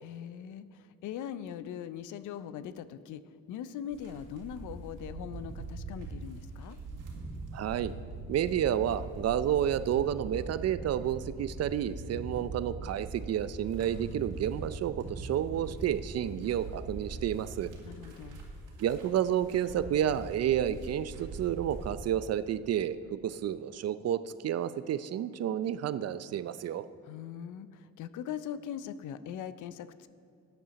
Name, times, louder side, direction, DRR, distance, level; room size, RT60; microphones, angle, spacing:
voice 1, 0.0-6.8 17.8-18.4 27.0-30.1, left 9 dB, 80° left, 14 dB, 0.6 m, -41 dB
sound 1, 3.9-21.9, right 3 dB, 90° right, 2.1 m, -42 dB
voice 2, 7.5-7.9 8.3-17.7 18.8-26.9, right 10 dB, 55° right, 14 dB, 0.5 m, -30 dB
13.5 x 9.3 x 4.0 m, 2.5 s
cardioid pair, 90°, 30 cm